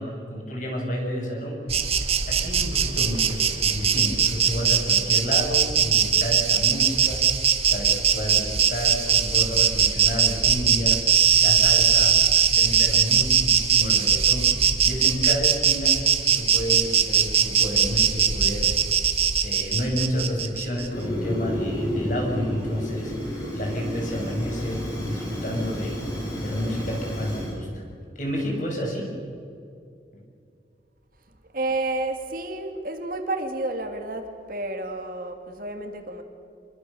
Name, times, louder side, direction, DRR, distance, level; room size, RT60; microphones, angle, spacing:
voice 1, 0.0-1.9 2.3-7.3 7.7-19.0 19.4-26.0 26.4-27.8 28.2-29.1 30.1-30.2, equal, 45° left, 0 dB, 7.0 m, -30 dB
Insect, 1.7-20.9, right 8 dB, 35° right, 1.6 m, -21 dB
Fire, 20.9-27.5, equal, 20° left, 7.4 m, -31 dB
voice 2, 31.5-36.2, right 2 dB, 50° right, 5 dB, 2.6 m, -30 dB
28.0 x 22.5 x 7.1 m, 2.5 s
head